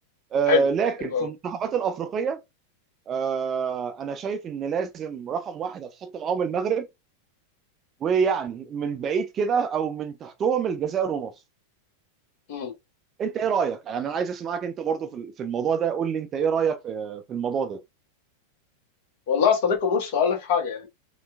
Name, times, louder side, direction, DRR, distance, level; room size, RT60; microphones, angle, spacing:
voice 1, 0.3-2.4 3.1-6.9 8.0-11.3 13.2-17.8, right 6 dB, 25° right, 0.4 m, -27 dB
voice 2, 19.3-20.9, left 6 dB, 50° left, 1.2 m, -23 dB
4.2 x 2.3 x 2.2 m
figure-of-eight pair, 90°, 0 cm